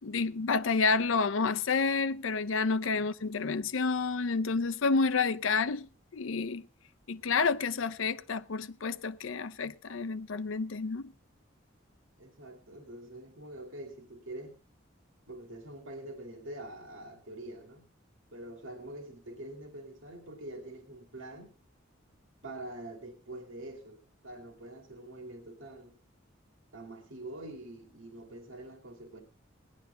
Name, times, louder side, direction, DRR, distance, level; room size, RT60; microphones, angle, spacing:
voice 1, 0.0-5.9 6.1-6.6 7.1-11.1, left 4 dB, 80° left, 0.6 m, -29 dB
voice 2, 12.2-14.5 15.3-17.9 18.3-21.5 22.4-26.0 26.7-29.2, right 1 dB, 80° right, 2.4 m, -45 dB
18.5 x 10.5 x 3.8 m
head